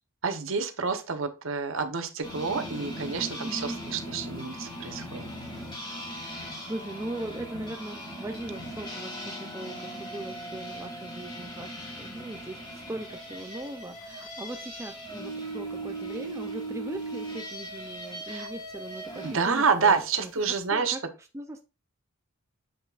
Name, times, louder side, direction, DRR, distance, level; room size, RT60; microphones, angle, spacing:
voice 1, 0.2-5.3 18.3-18.5 19.2-21.0, right 5 dB, 65° right, 7 dB, 0.9 m, -28 dB
sound 1, 2.2-19.4, right 1 dB, 20° left, 2.1 m, -39 dB
voice 2, 3.4-4.0 6.0-20.3 20.7-21.7, right 1 dB, 15° right, 4 dB, 0.4 m, -40 dB
7.8 x 5.7 x 2.4 m, 0.29 s
head